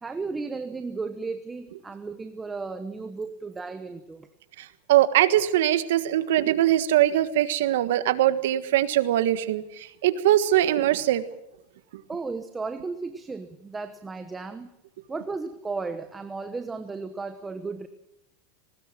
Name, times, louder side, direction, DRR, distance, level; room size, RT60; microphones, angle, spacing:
voice 1, 0.0-4.3 12.1-14.7 15.1-17.9, right 4 dB, 15° right, 9 dB, 1.1 m, -34 dB
voice 2, 4.6-11.2, right 13 dB, 80° right, 12 dB, 1.5 m, -22 dB
19.5 x 19.5 x 7.6 m, 0.83 s
supercardioid pair, 140°, 0 cm